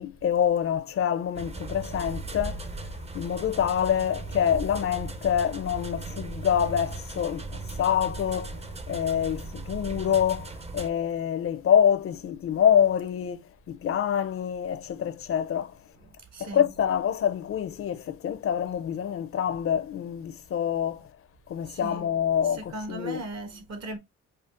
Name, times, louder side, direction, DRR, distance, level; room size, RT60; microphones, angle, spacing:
voice 1, 0.0-2.6 3.1-8.6 8.9-15.7 16.4-21.1 21.5-23.2, left 9 dB, 45° left, 0.5 m, -26 dB
sound 1, 1.4-10.9, right 3 dB, 20° right, 0.5 m, -37 dB
voice 2, 16.0-16.7 21.7-22.1 22.4-24.0, right 2 dB, 60° right, 1.3 m, -38 dB
5.0 x 2.3 x 2.3 m
cardioid pair, 90°, 30 cm